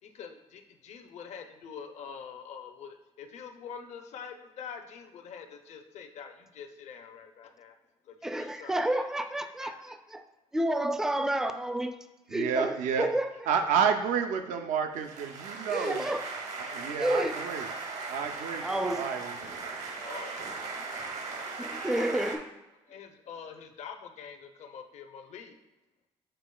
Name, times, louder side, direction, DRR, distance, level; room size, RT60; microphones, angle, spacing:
voice 1, 0.0-7.8 8.0-9.1 9.6-9.8 19.8-20.9 21.8-22.3 22.9-25.6, left 6 dB, 60° left, 6 dB, 0.6 m, -45 dB
voice 2, 8.2-10.2 10.5-13.3 15.7-16.3 17.0-17.4 18.6-19.1 21.6-22.4, right 1 dB, 5° right, 9 dB, 0.3 m, -30 dB
voice 3, 12.3-13.1 13.5-16.0 16.7-17.7 18.1-18.7 19.0-19.3, right 7 dB, 80° right, 6 dB, 0.4 m, -29 dB
sound 1, 14.9-22.4, right 4 dB, 60° right, 0.8 m, -38 dB
6.8 x 3.0 x 2.2 m, 1.0 s
supercardioid pair, 75°, 13 cm